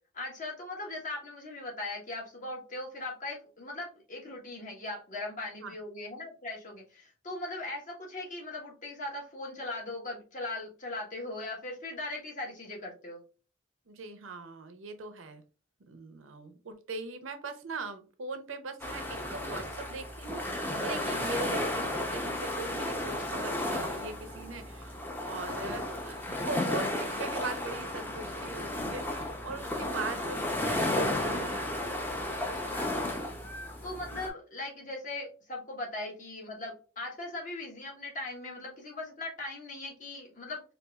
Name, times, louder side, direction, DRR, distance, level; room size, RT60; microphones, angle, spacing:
voice 1, 0.1-13.2 25.3-25.9 26.6-26.8 32.7-33.4 33.8-40.6, left 2 dB, 40° left, -1 dB, 1.1 m, -39 dB
voice 2, 13.9-15.4 15.9-32.1 32.6-32.7, right 3 dB, 85° right, 9 dB, 0.6 m, -41 dB
sound 1, 18.8-34.3, left 1 dB, 10° left, 0.5 m, -33 dB
4.4 x 2.4 x 2.2 m, 0.35 s
head